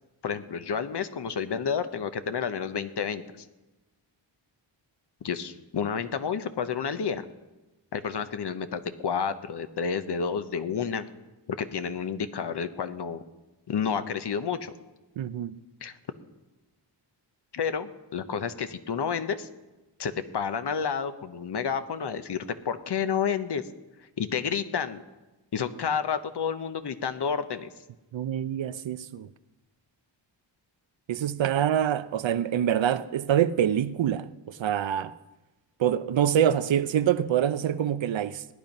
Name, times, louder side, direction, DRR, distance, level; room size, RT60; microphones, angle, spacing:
voice 1, 0.2-3.2 5.2-7.2 7.9-11.1 11.5-13.2 13.7-14.7 15.8-15.9 17.5-19.5 20.0-23.6 24.2-25.0 25.5-27.7, left 6 dB, 60° left, 0.9 m, -30 dB
voice 2, 15.2-15.5 28.1-29.3 31.1-35.1 35.8-38.5, right 10 dB, 75° right, 0.7 m, -25 dB
17.0 x 10.5 x 5.4 m
wide cardioid pair, 140°, 45 cm